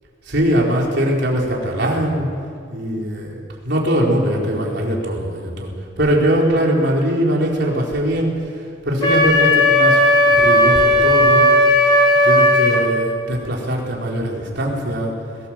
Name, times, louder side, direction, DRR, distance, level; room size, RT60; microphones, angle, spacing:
voice 1, 0.2-2.3 2.7-11.5 12.2-15.1, equal, 60° right, -2 dB, 4.5 m, -21 dB
Wind instrument woodwind instrument, 9.0-12.8, left 1 dB, 25° left, 5.6 m, -14 dB
22.0 x 18.5 x 7.6 m, 2.2 s
head